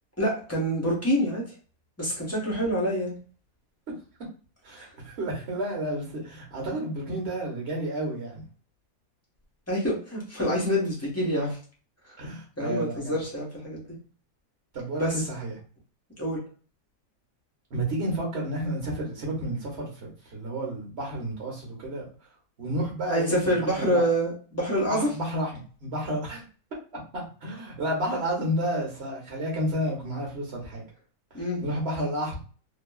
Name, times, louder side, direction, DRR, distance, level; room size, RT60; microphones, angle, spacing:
voice 1, 0.2-1.5 2.0-3.1 9.7-11.6 12.6-14.0 15.0-15.2 16.2-16.4 23.1-25.1 31.3-31.6, equal, 10° left, -4 dB, 0.8 m, -26 dB
voice 2, 4.6-8.4 12.2-13.1 14.7-15.5 17.7-19.9 20.3-22.0 22.6-24.0 24.9-26.4 27.1-30.8 31.6-32.4, right 1 dB, 45° right, -2 dB, 1.1 m, -31 dB
2.9 x 2.3 x 2.2 m, 0.39 s
omnidirectional pair, 1.7 m